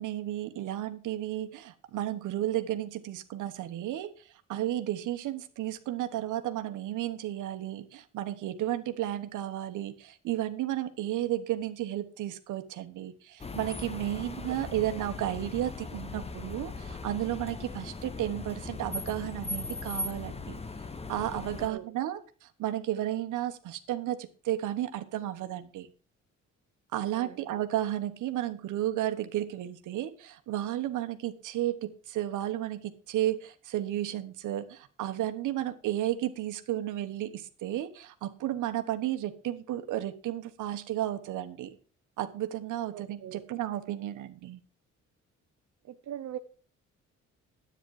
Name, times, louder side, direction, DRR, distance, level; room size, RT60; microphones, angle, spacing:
voice 1, 0.0-20.6 21.1-25.9 26.9-41.8 42.2-44.6, right 13 dB, 85° right, 9 dB, 1.2 m, -33 dB
sound 1, 13.4-21.7, left 3 dB, 20° left, 1.0 m, -39 dB
voice 2, 21.6-21.9 27.0-27.6 42.8-43.4 45.8-46.4, right 11 dB, 65° right, 7 dB, 0.8 m, -42 dB
10.0 x 9.0 x 4.8 m, 0.37 s
cardioid pair, 90°, 30 cm